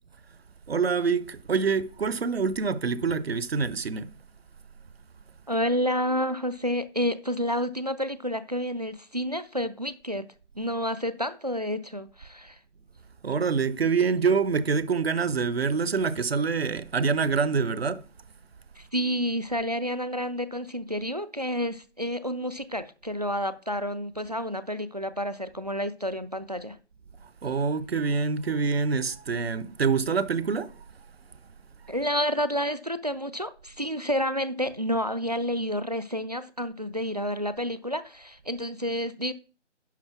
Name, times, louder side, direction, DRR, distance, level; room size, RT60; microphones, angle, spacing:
voice 1, 0.7-4.1 13.2-18.0 27.4-30.7, right 5 dB, 55° right, 0.8 m, -26 dB
voice 2, 5.5-10.3 10.6-12.6 18.8-26.8 31.9-39.3, equal, 35° right, 0.4 m, -29 dB
10.5 x 4.2 x 5.9 m
figure-of-eight pair, 160°, 36 cm